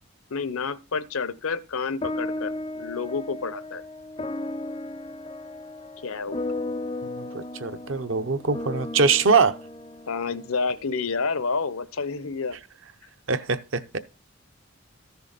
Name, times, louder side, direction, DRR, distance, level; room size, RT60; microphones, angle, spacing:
voice 1, 0.3-3.8 6.0-6.4 10.1-12.6, left 4 dB, 85° left, 0.7 m, -29 dB
sound 1, 2.0-10.7, left 2 dB, 25° left, 0.4 m, -35 dB
voice 2, 7.0-9.6 13.3-14.0, right 5 dB, 65° right, 0.8 m, -23 dB
13.5 x 6.9 x 4.0 m
head